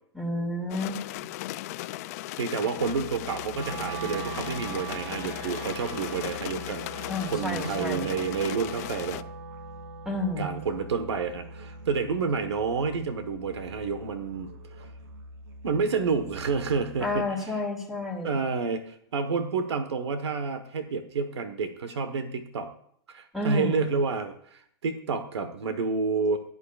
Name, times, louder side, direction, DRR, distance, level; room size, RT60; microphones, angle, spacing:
voice 1, 0.1-1.0 7.1-8.1 10.1-10.6 17.0-18.4 23.3-24.0, left 2 dB, ahead, 2 dB, 2.3 m, -30 dB
sound 1, 0.7-9.2, left 17 dB, 35° left, 0.4 m, -37 dB
voice 2, 2.4-9.2 10.4-14.5 15.6-17.2 18.2-22.7 23.1-26.4, right 5 dB, 90° right, 9 dB, 1.3 m, -29 dB
Musical instrument, 2.7-17.5, left 1 dB, 45° right, 2.6 m, -46 dB
Wind instrument woodwind instrument, 3.5-13.7, right 6 dB, 65° right, 1.0 m, -42 dB
16.5 x 11.5 x 2.5 m, 0.65 s
hypercardioid pair, 150°, 14 cm